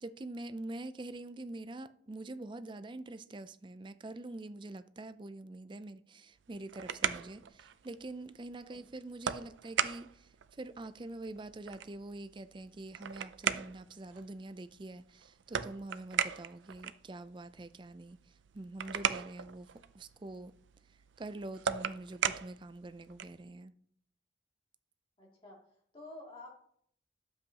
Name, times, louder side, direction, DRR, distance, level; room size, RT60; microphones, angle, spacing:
voice 1, 0.0-18.2 18.5-19.7 19.9-20.5 21.2-23.7, right 2 dB, 25° right, 0.4 m, -45 dB
sound 1, 6.4-23.5, right 8 dB, 90° right, 0.5 m, -39 dB
voice 2, 25.2-25.6 25.9-26.5, left 2 dB, 30° left, 2.6 m, -50 dB
11.5 x 7.6 x 2.9 m
head